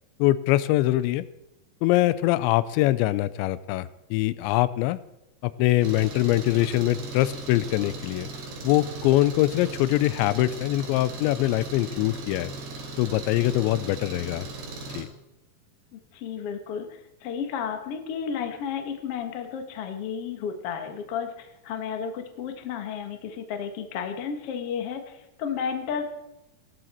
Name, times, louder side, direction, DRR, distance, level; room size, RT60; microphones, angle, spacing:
voice 1, 0.2-1.2 1.8-5.0 5.4-8.3 8.6-12.5 13.0-14.5 14.9-15.1, left 16 dB, 90° left, 16 dB, 2.9 m, -23 dB
Engine, 5.8-15.0, right 3 dB, 70° right, 4.7 m, -38 dB
voice 2, 15.9-26.0, left 7 dB, 60° left, 6 dB, 1.6 m, -32 dB
18.0 x 13.0 x 4.4 m, 0.91 s
omnidirectional pair, 5.1 m